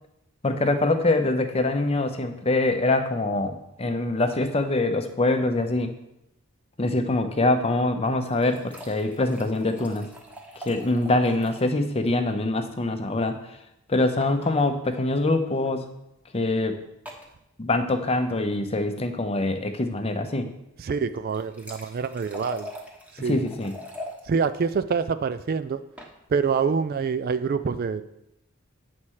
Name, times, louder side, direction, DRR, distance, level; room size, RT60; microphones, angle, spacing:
voice 1, 0.4-5.9 6.8-10.1 10.6-13.4 13.9-15.9 16.3-16.8 17.6-20.5 23.3-23.7, left 2 dB, 30° left, 7 dB, 0.7 m, -24 dB
sound 1, 8.0-11.8 12.1-12.2 12.4-12.5 14.2-14.6 15.5-15.7 17.1-17.3 21.1-24.2 25.7-26.1, equal, 5° right, 1.0 m, -43 dB
voice 2, 20.8-22.7 23.1-23.5 24.3-25.8 26.3-28.0, right 5 dB, 45° right, 12 dB, 0.3 m, -26 dB
9.0 x 4.2 x 6.4 m, 0.86 s
head